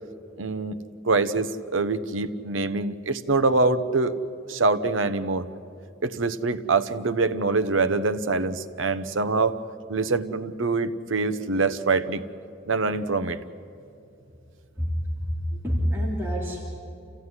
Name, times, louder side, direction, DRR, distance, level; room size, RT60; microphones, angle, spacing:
voice 1, 0.4-0.8 1.0-4.2 4.5-5.5 6.0-9.6 9.9-12.2 12.7-13.4, right 3 dB, 75° right, 11 dB, 0.9 m, -24 dB
voice 2, 14.8-15.4 15.6-16.6, equal, 10° right, -6 dB, 3.0 m, -27 dB
28.0 x 15.5 x 9.8 m, 2.7 s
head